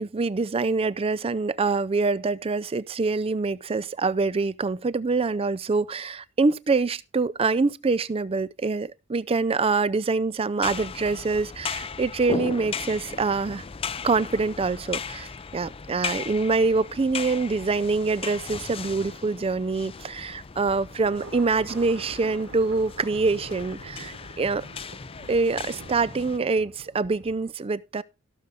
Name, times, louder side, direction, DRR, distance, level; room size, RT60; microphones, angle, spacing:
voice 1, 0.0-13.6 14.0-24.7 25.3-28.0, right 4 dB, 25° right, 0.4 m, -25 dB
sound 1, 10.6-26.4, left 5 dB, 25° left, 0.5 m, -37 dB
sound 2, 21.0-27.5, right 2 dB, 65° right, 3.1 m, -46 dB
16.5 x 6.8 x 3.5 m
head